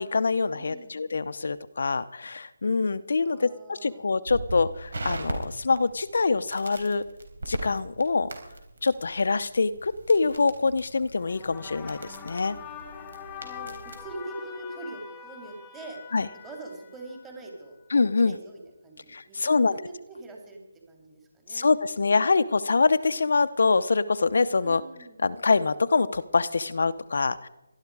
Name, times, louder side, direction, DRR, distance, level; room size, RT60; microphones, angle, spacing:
voice 1, 0.0-7.0 7.5-8.3 8.8-12.6 16.1-16.3 17.9-18.3 19.1-19.7 21.5-24.8 25.2-27.5, left 4 dB, 65° left, 12 dB, 0.8 m, -25 dB
voice 2, 0.5-1.0 3.2-4.1 13.4-16.2 16.4-17.8 18.2-20.6 20.9-21.7 24.6-25.2, right 2 dB, 10° right, 1 dB, 3.0 m, -43 dB
Crackle, 4.3-14.1, right 2 dB, 65° right, 3.9 m, -40 dB
sound 1, 11.2-17.5, left 7 dB, 15° left, 1.3 m, -44 dB
18.5 x 12.5 x 4.8 m, 0.95 s
figure-of-eight pair, 160°, 0 cm